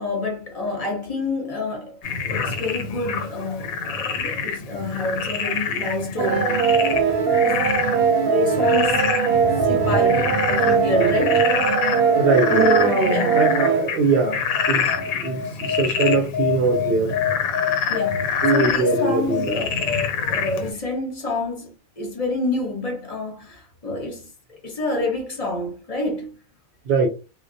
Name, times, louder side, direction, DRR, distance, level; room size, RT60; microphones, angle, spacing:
voice 1, 0.0-2.0 2.2-7.2 7.4-9.0 9.6-11.5 13.0-13.4 17.9-24.3 24.6-26.3, left 2 dB, 40° left, 0.6 m, -28 dB
Frog, 2.0-20.7, left 6 dB, 85° left, 1.0 m, -26 dB
sound 1, 6.2-13.8, right 6 dB, 90° right, 1.0 m, -20 dB
voice 2, 12.1-12.9 13.3-14.4 14.7-14.9 15.2-17.2 18.4-19.7 26.9-27.1, right 4 dB, 65° right, 0.6 m, -22 dB
Human voice, 12.5-14.2, right 2 dB, 20° right, 0.3 m, -24 dB
2.3 x 2.1 x 2.5 m
omnidirectional pair, 1.4 m